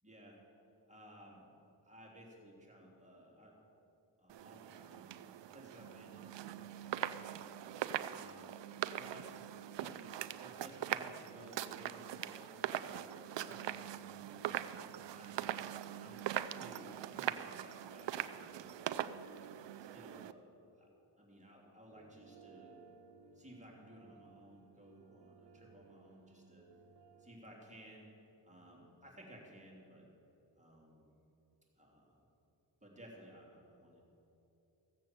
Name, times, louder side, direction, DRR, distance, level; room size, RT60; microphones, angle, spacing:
voice 1, 0.0-0.4 0.9-1.5 1.8-3.6 4.2-7.4 8.0-8.5 8.9-9.4 9.7-15.4 16.0-16.2 16.5-19.0 19.4-20.5 20.8-20.9 21.2-22.8 23.3-26.7 27.2-28.1 28.4-30.1 30.5-31.1 31.8-32.2 32.8-34.0, right 1 dB, 15° right, -3 dB, 3.3 m, -57 dB
sound 1, 4.3-20.3, right 11 dB, 85° right, 0.5 m, -42 dB
sound 2, 21.9-27.4, right 5 dB, 65° right, 1.5 m, -62 dB
15.5 x 7.4 x 7.6 m, 2.9 s
cardioid pair, 75°, 42 cm